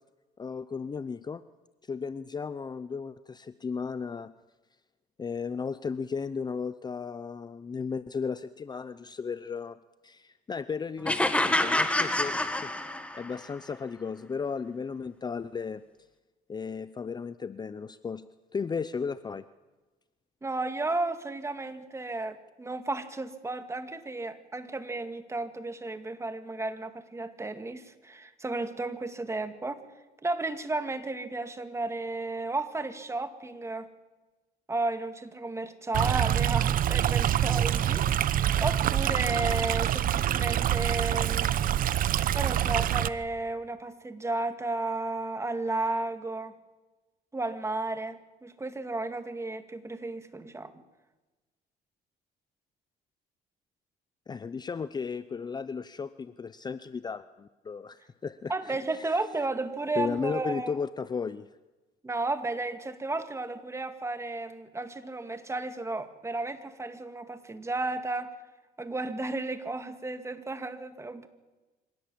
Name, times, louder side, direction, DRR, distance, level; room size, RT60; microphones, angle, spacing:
voice 1, 0.4-1.4 1.9-4.3 5.2-9.8 10.0-15.8 16.5-18.3 18.5-19.5 54.3-59.1 60.0-61.5, left 5 dB, 25° left, 14 dB, 0.6 m, -35 dB
sound 1, 11.1-13.4, left 1 dB, 5° left, 1.8 m, -27 dB
voice 2, 20.4-29.8 30.2-33.9 34.7-41.5 42.3-46.6 47.3-50.7 58.5-60.7 62.0-68.3 68.8-71.3, right 2 dB, 15° right, 9 dB, 2.0 m, -33 dB
Stream, 35.9-43.1, right 11 dB, 55° right, 0.9 m, -26 dB
25.5 x 17.0 x 8.7 m, 1.2 s
cardioid pair, 110°, 17 cm